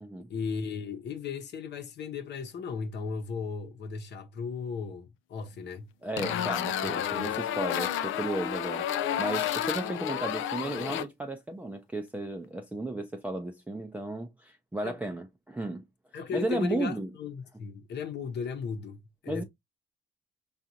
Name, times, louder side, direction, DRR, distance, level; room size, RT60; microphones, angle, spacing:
voice 1, 0.3-5.9 7.1-7.4 14.8-15.0 16.1-19.4, left 5 dB, 60° left, 0.9 m, -36 dB
voice 2, 6.0-8.9 9.2-15.8 16.3-17.1 19.3-19.4, right 2 dB, 5° right, 0.5 m, -34 dB
sound 1, 6.2-11.0, left 10 dB, 85° left, 0.5 m, -31 dB
4.8 x 2.5 x 2.7 m
cardioid pair, 90°, 20 cm